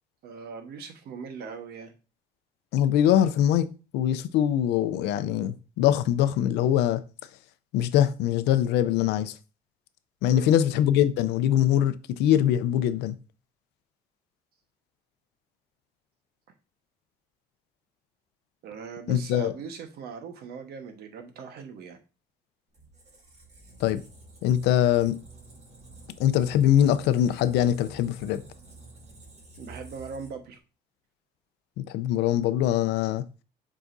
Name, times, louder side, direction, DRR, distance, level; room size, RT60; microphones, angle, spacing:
voice 1, 0.2-1.9 10.3-10.5 18.6-22.0 29.6-30.6, right 5 dB, 70° right, 1.2 m, -40 dB
voice 2, 2.7-3.7 3.9-7.0 7.7-9.3 10.2-13.2 19.1-19.5 23.8-24.0 24.4-25.2 26.2-28.4 31.8-33.2, left 11 dB, 90° left, 0.6 m, -23 dB
Squeak, 22.7-30.6, right 2 dB, 40° right, 2.2 m, -49 dB
7.2 x 4.9 x 2.6 m
cardioid pair, 110°, 17 cm